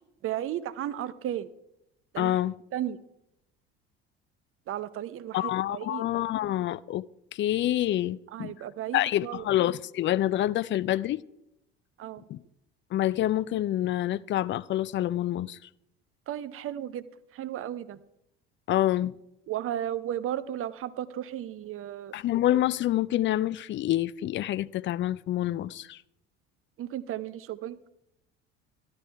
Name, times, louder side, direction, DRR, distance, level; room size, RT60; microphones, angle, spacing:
voice 1, 0.2-1.5 2.1-2.3 2.7-3.0 4.7-6.0 8.3-9.4 12.0-12.2 16.3-17.1 17.3-18.0 19.5-22.1 26.8-27.8, right 11 dB, 45° right, 0.8 m, -34 dB
voice 2, 2.2-2.5 5.3-7.1 7.3-8.5 8.9-11.2 12.3-12.4 12.9-15.6 18.7-19.1 22.1-26.0, left 13 dB, 40° left, 0.5 m, -27 dB
13.0 x 12.0 x 4.6 m
hypercardioid pair, 65°, 31 cm